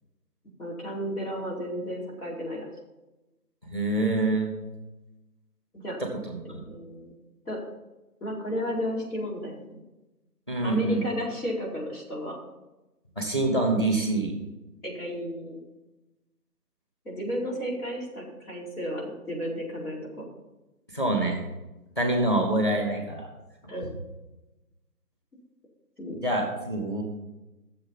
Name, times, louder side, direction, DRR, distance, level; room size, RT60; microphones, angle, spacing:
voice 1, 0.6-2.7 5.7-6.0 6.4-7.1 7.4-7.6 8.2-9.8 10.6-12.4 14.8-15.6 17.0-20.3 23.7-23.9 26.0-26.2, equal, 70° left, -3 dB, 4.9 m, -33 dB
voice 2, 3.7-4.5 6.3-6.6 10.5-11.0 13.2-14.3 20.9-21.4 22.0-23.3 26.2-27.0, right 2 dB, 15° left, 2 dB, 1.9 m, -26 dB
14.0 x 7.3 x 5.8 m, 1.0 s
figure-of-eight pair, 175°, 47 cm